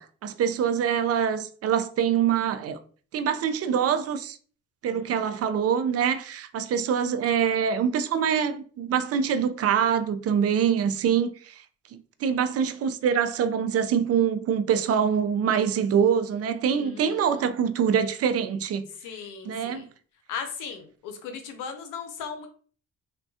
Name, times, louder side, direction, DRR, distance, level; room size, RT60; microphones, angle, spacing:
voice 1, 0.0-2.8 3.1-4.4 4.8-11.5 12.2-18.9 19.5-19.9, right 8 dB, 50° right, 0.4 m, -24 dB
voice 2, 4.9-5.4 10.5-10.9 16.8-17.5 19.0-19.9 20.3-22.5, left 6 dB, 85° left, 0.7 m, -38 dB
3.4 x 2.2 x 2.6 m
supercardioid pair, 75°, 31 cm